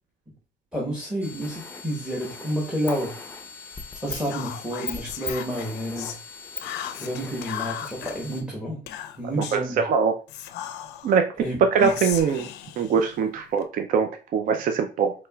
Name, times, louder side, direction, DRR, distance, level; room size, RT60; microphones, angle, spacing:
voice 1, 0.7-3.1 4.0-6.2 7.0-8.8 9.2-9.9 11.4-11.9, equal, 5° right, -3 dB, 1.0 m, -30 dB
sound 1, 1.2-8.4, left 5 dB, 10° left, 0.6 m, -39 dB
Whispering, 4.1-6.2 6.6-8.1 8.9-9.7 10.3-11.2 11.8-13.7, left 11 dB, 85° left, 0.4 m, -37 dB
voice 2, 9.4-10.2 11.0-11.3 11.7-12.5 12.8-15.1, right 6 dB, 55° right, 6 dB, 0.4 m, -23 dB
4.3 x 2.9 x 2.2 m, 0.35 s
cardioid pair, 110°, 17 cm